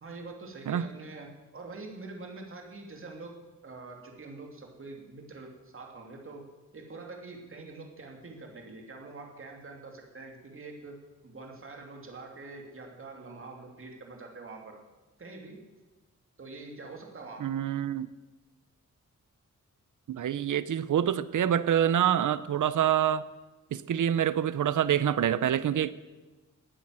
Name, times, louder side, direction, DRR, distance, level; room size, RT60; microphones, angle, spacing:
voice 1, 0.0-14.8 15.2-15.7 16.4-17.5, right 3 dB, 45° right, 1 dB, 2.7 m, -45 dB
voice 2, 17.4-18.1 20.1-23.2 23.7-25.9, right 10 dB, 80° right, 16 dB, 0.7 m, -26 dB
18.0 x 10.0 x 7.6 m, 1.2 s
wide cardioid pair, 150°, 30 cm